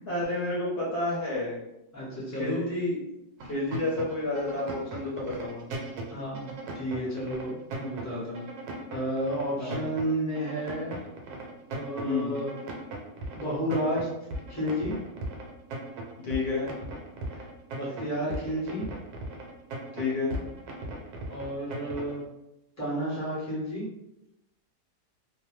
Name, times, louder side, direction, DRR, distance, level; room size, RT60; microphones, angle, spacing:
voice 1, 0.1-1.6 2.3-3.0 3.5-5.7 9.6-9.8 12.0-12.3 16.2-16.7 19.9-20.3, left 2 dB, 55° left, -5 dB, 0.9 m, -30 dB
voice 2, 1.9-2.6 6.1-8.4 8.9-11.0 11.7-12.5 13.3-14.1 14.5-15.0 17.7-18.9 21.3-22.2 22.8-23.9, equal, 20° left, -6 dB, 0.5 m, -31 dB
sound 1, 3.4-22.2, right 2 dB, 70° right, 1.1 m, -37 dB
2.7 x 2.0 x 3.0 m, 0.88 s
omnidirectional pair, 1.8 m